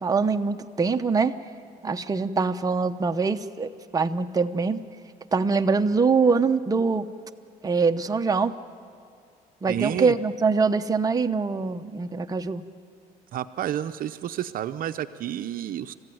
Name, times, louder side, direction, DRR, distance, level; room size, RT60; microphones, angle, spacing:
voice 1, 0.0-1.3 1.8-4.8 5.3-7.1 7.6-8.5 9.6-12.6, right 4 dB, 20° right, 7 dB, 0.8 m, -23 dB
voice 2, 9.7-10.1 13.3-15.9, right 11 dB, 60° right, 10 dB, 0.7 m, -30 dB
29.0 x 15.0 x 9.3 m, 2.3 s
cardioid pair, 110°, 17 cm